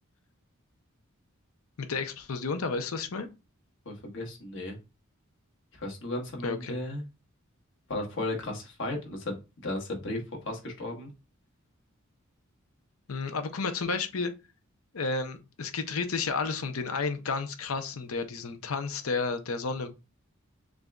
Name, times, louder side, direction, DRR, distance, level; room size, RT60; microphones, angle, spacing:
voice 1, 1.8-3.3 6.4-6.8 13.1-14.3 14.9-19.9, left 4 dB, 85° left, 0.7 m, -31 dB
voice 2, 3.8-4.8 5.8-7.0 7.9-10.2 10.4-11.1, left 1 dB, 65° left, 1.3 m, -35 dB
6.5 x 2.6 x 2.3 m
head